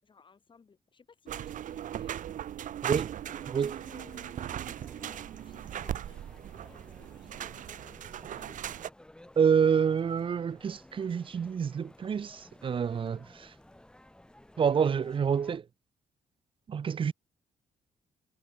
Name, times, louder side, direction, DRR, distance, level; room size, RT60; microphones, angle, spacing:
voice 1, 0.0-2.3 3.5-6.2 6.5-8.9, left 5 dB, 35° left, 7.6 m, -59 dB
sound 1, 1.3-8.9, right 10 dB, 75° right, 1.3 m, -38 dB
sound 2, 3.2-15.6, left 1 dB, 5° left, 2.9 m, -56 dB
voice 2, 3.5-3.8 9.4-13.5 14.6-15.6 16.7-17.1, right 7 dB, 40° right, 0.6 m, -28 dB
cardioid pair, 130°, 14 cm